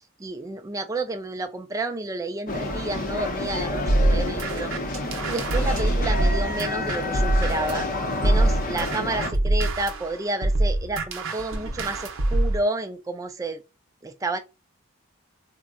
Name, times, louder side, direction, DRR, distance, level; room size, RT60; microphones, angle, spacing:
voice 1, 0.2-4.7 5.3-7.9 8.2-13.6 14.0-14.4, right 2 dB, 15° right, 0.3 m, -30 dB
Trainstation passenger terminal with hooligans, 2.5-9.3, left 2 dB, 40° left, 0.6 m, -29 dB
sound 1, 3.9-7.8 8.2-12.6, right 1 dB, 65° right, 0.6 m, -24 dB
3.6 x 2.1 x 2.4 m
head